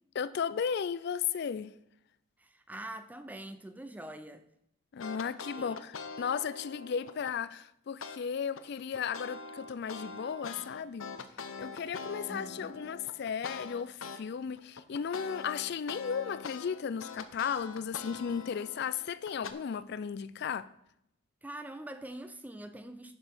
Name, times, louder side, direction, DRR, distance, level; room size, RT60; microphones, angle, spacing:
voice 1, 0.2-1.7 4.9-11.1 11.6-20.7, left 7 dB, 50° left, 0.3 m, -35 dB
voice 2, 2.4-4.5 5.6-5.8 12.3-12.8 21.4-23.2, right 1 dB, 10° right, 0.5 m, -44 dB
sound 1, 5.0-7.4 8.0-8.2 8.6-14.2 14.6-19.5, left 5 dB, 75° left, 0.8 m, -43 dB
10.5 x 5.4 x 6.0 m
head